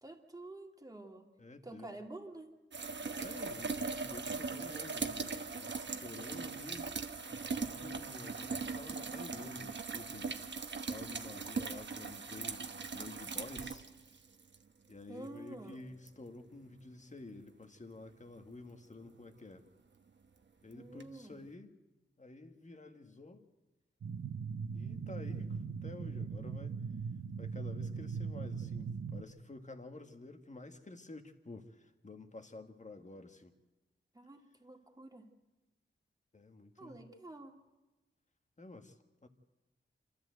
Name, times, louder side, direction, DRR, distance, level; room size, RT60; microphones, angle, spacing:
voice 1, 0.0-1.3 1.6-2.5 15.1-15.8 20.7-21.4 34.1-35.3 36.8-37.6, right 2 dB, 20° right, 2 dB, 2.4 m, -49 dB
voice 2, 1.4-1.9 3.2-7.0 7.3-10.4 10.9-13.9 14.9-19.6 20.6-21.8 22.2-23.5 24.7-26.8 27.4-33.6 36.3-37.0 38.6-39.3, left 2 dB, 35° left, 6 dB, 1.7 m, -50 dB
sound 1, 2.7-14.6 16.1-16.2 21.0-21.1, right 4 dB, 60° right, 1.1 m, -40 dB
sound 2, 24.0-29.2, right 5 dB, 80° right, 0.9 m, -40 dB
27.0 x 13.5 x 7.9 m, 1.1 s
wide cardioid pair, 80°, 21 cm